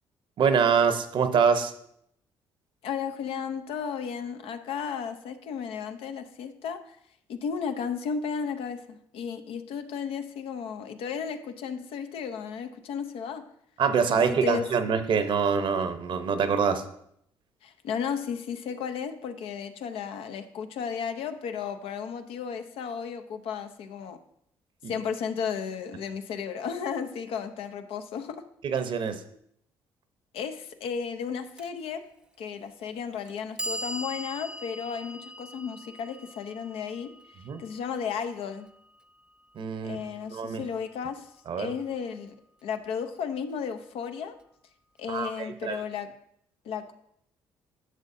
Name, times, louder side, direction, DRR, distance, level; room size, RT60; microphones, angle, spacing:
voice 1, 0.4-1.7 13.8-16.9 24.8-24.9 28.6-29.2 37.4-37.6 39.5-40.7 41.5-41.7 45.1-45.8, right 6 dB, 55° right, 9 dB, 0.8 m, -25 dB
voice 2, 2.8-7.0 7.3-13.4 14.2-14.6 17.6-24.2 24.9-28.4 30.3-32.0 32.4-37.1 37.6-38.7 39.8-41.3 41.6-42.3 42.6-44.4 45.0-46.1 46.7-46.9, left 6 dB, 75° left, 8 dB, 0.7 m, -34 dB
Clock, 31.6-31.7 32.7-32.8 33.3-39.3, equal, 10° right, 0.3 m, -41 dB
11.0 x 6.4 x 2.6 m, 0.71 s
supercardioid pair, 75°, 10 cm